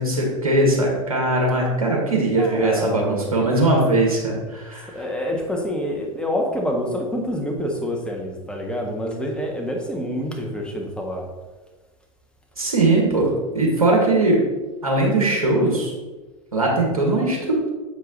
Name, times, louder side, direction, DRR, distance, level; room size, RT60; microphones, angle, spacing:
voice 1, 0.0-5.0 12.6-14.4 14.8-15.9 16.5-17.7, right 2 dB, 85° right, -2 dB, 1.7 m, -20 dB
voice 2, 2.4-3.3 4.4-4.6 4.9-11.3, equal, 5° left, 0 dB, 1.5 m, -27 dB
7.3 x 4.9 x 3.9 m, 1.2 s
figure-of-eight pair, 85°, 18 cm